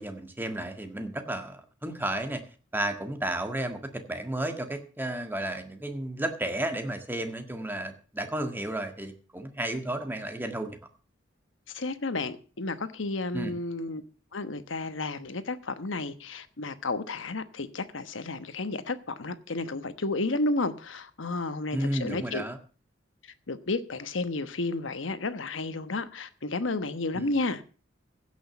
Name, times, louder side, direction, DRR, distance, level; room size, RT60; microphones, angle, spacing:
voice 1, 0.0-2.4 2.7-10.8 13.3-13.5 21.7-22.6 27.1-27.3, right 1 dB, 10° right, 1.6 m, -33 dB
voice 2, 11.7-14.0 14.3-22.4 23.5-27.6, left 2 dB, 75° left, 1.1 m, -32 dB
16.0 x 6.4 x 7.0 m
head